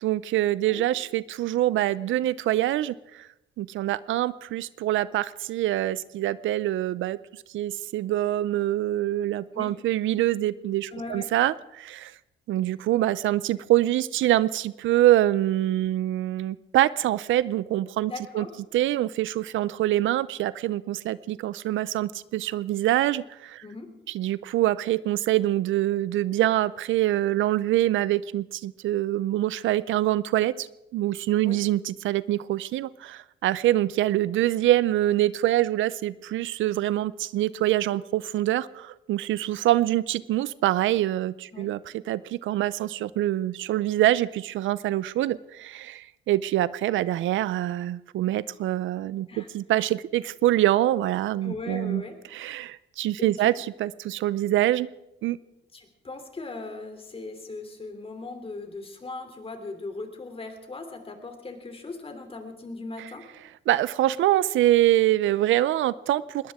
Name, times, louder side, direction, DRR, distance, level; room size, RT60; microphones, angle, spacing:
voice 1, 0.0-3.3 3.6-7.2 7.5-12.1 12.5-18.5 18.7-23.6 24.1-30.7 30.9-41.8 42.1-52.0 52.3-54.9 55.2-55.4 63.7-66.5, right 14 dB, 75° right, 18 dB, 0.5 m, -25 dB
voice 2, 10.9-11.3 18.0-18.5 23.6-23.9 31.4-31.6 41.5-41.7 49.3-49.5 51.4-52.1 53.2-53.3 55.7-63.2, left 3 dB, 30° left, 6 dB, 3.0 m, -38 dB
21.0 x 18.5 x 3.6 m, 0.90 s
cardioid pair, 90°, 20 cm